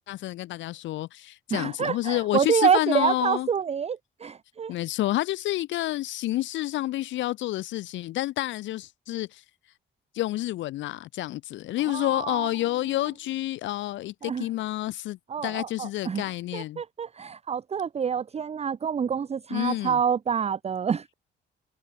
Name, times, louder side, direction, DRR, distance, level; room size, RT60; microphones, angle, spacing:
voice 1, 0.1-3.5 4.7-9.4 10.1-16.8 19.5-20.0, left 15 dB, 70° left, 0.4 m, -29 dB
voice 2, 1.5-4.7 11.9-12.5 14.2-14.5 15.3-21.1, right 7 dB, 30° right, 0.6 m, -27 dB
cardioid pair, 90°, 20 cm